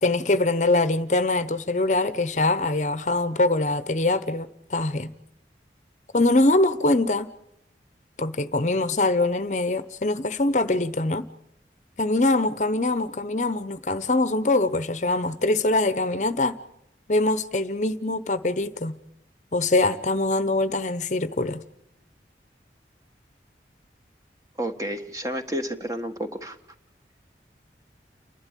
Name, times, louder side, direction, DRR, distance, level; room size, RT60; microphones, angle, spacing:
voice 1, 0.0-5.1 6.1-7.3 8.2-11.3 12.0-16.6 17.1-18.9 19.5-21.6, left 2 dB, 45° left, 0.8 m, -23 dB
voice 2, 24.6-26.6, right 1 dB, 20° right, 1.4 m, -30 dB
29.5 x 12.0 x 9.2 m
head